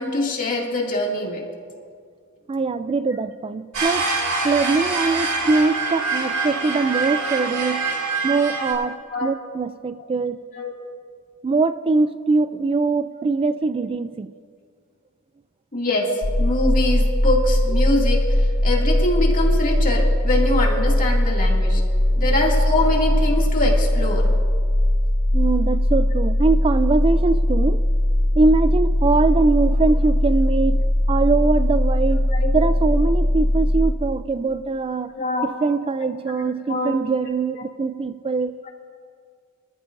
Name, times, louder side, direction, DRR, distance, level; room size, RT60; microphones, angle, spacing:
voice 1, 0.0-1.4 5.3-5.5 9.1-9.3 10.5-10.7 15.7-16.1 16.4-21.8 22.2-24.3 32.3-32.6 35.2-35.5 36.4-36.9, left 1 dB, 40° left, -1 dB, 2.3 m, -24 dB
voice 2, 2.5-4.1 4.4-7.9 8.2-10.4 11.4-14.3 22.1-22.3 25.3-27.8 28.3-30.8 31.1-32.3 32.5-35.1 35.4-38.5, right 3 dB, 25° right, 12 dB, 0.3 m, -22 dB
sound 1, 3.7-8.7, right 3 dB, 85° right, 3.7 m, -25 dB
sound 2, 16.2-33.9, left 1 dB, 60° left, 1.1 m, -19 dB
25.5 x 13.5 x 2.6 m, 2.1 s
head